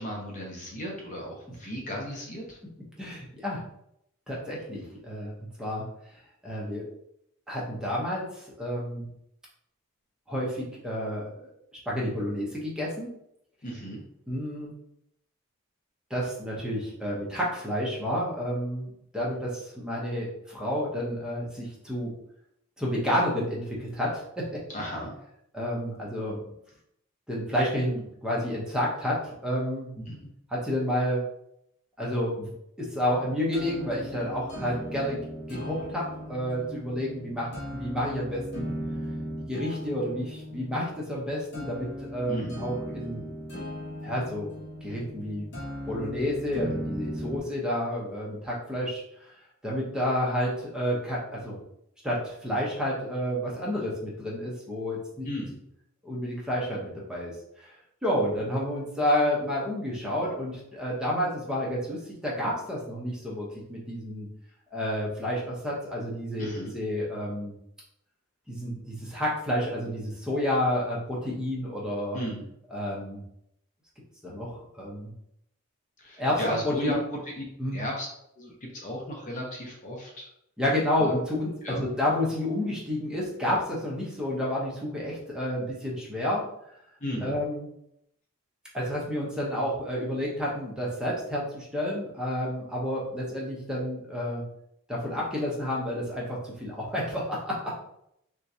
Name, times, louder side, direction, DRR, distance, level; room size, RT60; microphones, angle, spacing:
voice 1, 0.0-2.6 13.6-14.0 24.7-25.1 30.0-30.3 42.3-42.6 55.2-55.6 66.4-66.7 72.1-72.5 76.0-77.0 77.4-77.5 77.7-78.1 78.4-80.3 81.0-81.1 81.6-81.8 87.0-87.3, equal, 35° left, -1 dB, 0.6 m, -35 dB
voice 2, 3.0-3.6 4.3-5.3 5.6-5.8 6.4-6.8 7.5-9.0 10.3-11.3 11.9-13.1 14.3-14.7 16.1-22.1 22.8-24.9 25.5-26.4 27.3-29.9 30.5-31.2 32.0-32.5 32.8-35.2 35.5-38.7 39.5-43.2 44.0-44.5 44.8-45.5 45.9-49.0 49.6-51.6 52.0-55.3 56.0-57.3 57.6-57.7 58.0-64.3 64.7-67.5 68.5-72.2 72.7-73.2 74.2-75.1 76.2-77.0 77.6-77.8 80.6-86.4 87.2-87.7 88.7-94.4 94.9-97.7, equal, 5° right, -5 dB, 0.8 m, -30 dB
sound 1, 33.0-47.4, equal, 50° left, 1.1 m, -38 dB
3.5 x 3.0 x 2.7 m, 0.76 s
head